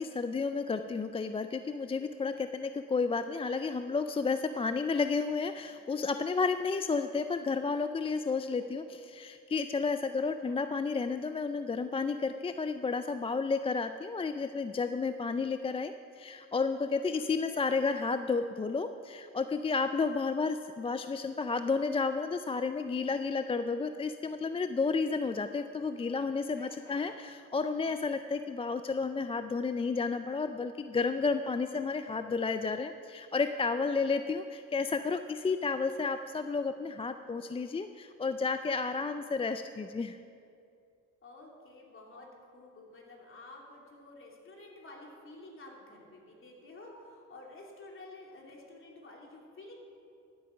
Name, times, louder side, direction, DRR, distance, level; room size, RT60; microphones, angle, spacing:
voice 1, 0.0-40.2, left 4 dB, 20° left, 9 dB, 0.4 m, -32 dB
voice 2, 10.2-10.5 17.1-17.2 26.5-27.1 33.9-34.0 38.9-39.1 41.2-49.7, left 2 dB, 45° left, -1 dB, 2.9 m, -51 dB
14.5 x 8.7 x 5.8 m, 2.5 s
cardioid pair, 90°, 30 cm